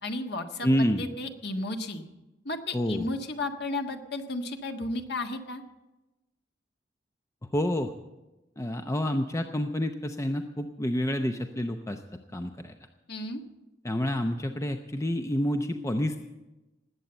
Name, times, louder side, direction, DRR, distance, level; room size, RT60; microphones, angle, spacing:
voice 1, 0.0-2.0 2.4-5.6 13.1-13.4, left 2 dB, 65° left, 5 dB, 1.5 m, -33 dB
voice 2, 0.6-1.0 2.7-3.1 7.5-7.9 8.6-12.0 12.3-12.7 13.8-16.2, left 1 dB, 15° left, 6 dB, 0.7 m, -28 dB
19.0 x 8.4 x 7.9 m, 1.0 s
head